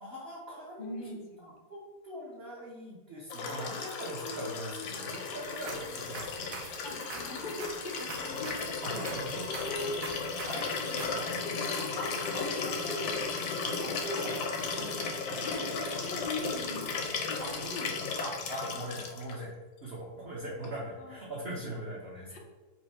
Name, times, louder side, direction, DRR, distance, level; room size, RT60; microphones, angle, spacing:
voice 1, 0.0-1.0 1.7-6.8 8.8-9.5 10.5-14.3 15.3-15.5 15.9-16.0 17.4-17.9 18.2-19.5 19.8-22.4, equal, 50° right, -5 dB, 0.8 m, -41 dB
voice 2, 0.8-1.6 4.2-5.0 5.6-5.7 6.8-9.2 9.5-10.0 10.7-11.0 14.2-14.9 15.4-18.0 18.7-19.1 21.0-21.5 22.3-22.4, left 2 dB, 60° left, 1 dB, 0.5 m, -42 dB
Liquid, 3.3-19.3 20.6-20.7, left 4 dB, 75° left, 1.2 m, -35 dB
sound 1, 5.4-11.1, right 4 dB, 70° right, 1.2 m, -45 dB
4.4 x 2.4 x 4.2 m, 1.3 s
omnidirectional pair, 1.9 m